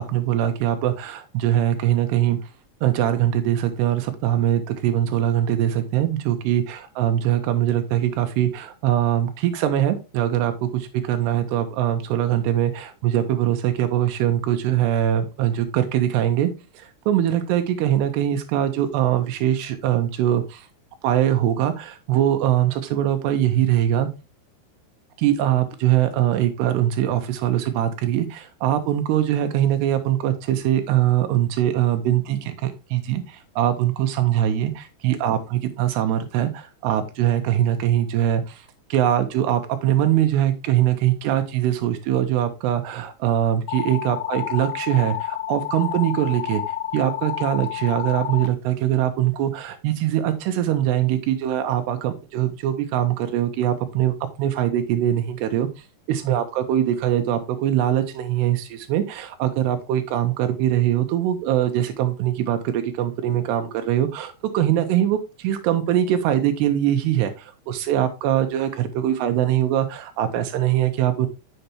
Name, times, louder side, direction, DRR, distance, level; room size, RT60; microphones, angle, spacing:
voice 1, 0.0-2.4 2.8-20.7 21.0-24.1 25.2-46.6 46.9-55.7 56.1-71.3, right 11 dB, 85° right, 8 dB, 2.8 m, -22 dB
sound 1, 43.7-48.5, left 12 dB, 80° left, 2.6 m, -29 dB
7.9 x 6.7 x 2.9 m, 0.28 s
omnidirectional pair, 4.8 m